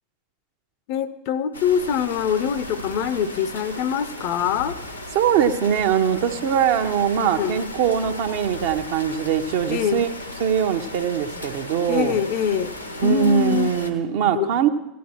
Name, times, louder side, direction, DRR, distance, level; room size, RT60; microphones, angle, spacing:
voice 1, 0.9-4.8 7.2-7.6 9.7-10.0 11.9-12.7 13.0-13.7 14.3-14.5, left 8 dB, 50° left, 14 dB, 0.5 m, -24 dB
sound 1, 1.5-13.9, left 1 dB, 85° left, 0.9 m, -36 dB
voice 2, 5.1-10.1 10.4-12.2 13.0-14.7, right 8 dB, 55° right, 7 dB, 0.7 m, -22 dB
16.0 x 10.5 x 2.9 m, 0.90 s
figure-of-eight pair, 80°, 0 cm